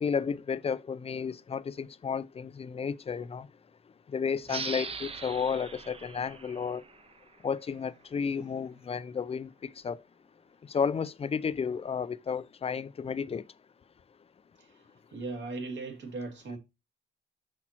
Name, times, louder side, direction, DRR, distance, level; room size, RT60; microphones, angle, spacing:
voice 1, 0.0-3.5 4.1-6.8 7.4-9.5 9.8-10.0 10.7-13.4, left 6 dB, 30° left, 0.5 m, -32 dB
sound 1, 4.4-7.7, right 5 dB, 30° right, 0.7 m, -41 dB
voice 2, 14.6-16.6, right 3 dB, 65° right, 2.2 m, -39 dB
6.1 x 5.8 x 2.8 m
cardioid pair, 90°, 20 cm